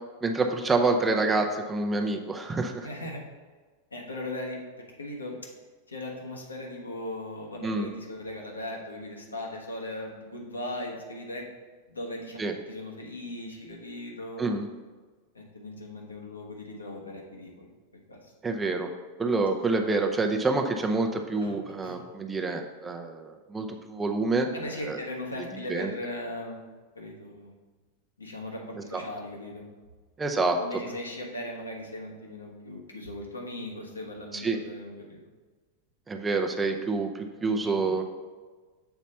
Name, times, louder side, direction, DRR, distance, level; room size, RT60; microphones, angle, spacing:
voice 1, 0.2-2.9 7.6-7.9 12.4-12.5 14.4-14.7 18.4-18.9 19.2-24.5 24.9-25.0 25.7-25.9 28.9-29.0 30.2-30.6 34.3-34.6 36.1-38.0, right 3 dB, 15° right, 4 dB, 0.6 m, -27 dB
voice 2, 2.8-3.2 3.9-4.6 5.0-5.4 5.9-11.4 11.9-14.4 15.3-17.7 18.1-18.3 21.4-21.5 21.8-22.0 24.5-26.6 26.9-27.5 28.2-29.7 30.6-35.2 37.6-37.9, left 1 dB, 75° left, -1 dB, 1.2 m, -38 dB
6.9 x 4.1 x 5.5 m, 1.4 s
figure-of-eight pair, 90°, 0 cm